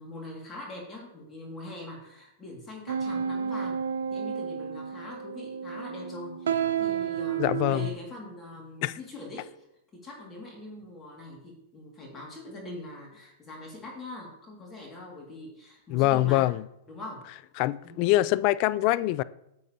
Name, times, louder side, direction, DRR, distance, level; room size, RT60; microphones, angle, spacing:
voice 1, 0.0-3.8 4.1-9.7 9.9-16.5 16.9-17.2 17.8-18.1, left 1 dB, 20° left, 2.2 m, -42 dB
sound 1, 2.9-7.9, right 7 dB, 85° right, 0.6 m, -31 dB
voice 2, 7.4-7.9 8.8-8.9 15.9-16.6 17.6-19.2, left 16 dB, 50° left, 0.3 m, -24 dB
9.3 x 7.9 x 2.9 m
hypercardioid pair, 115°, 0 cm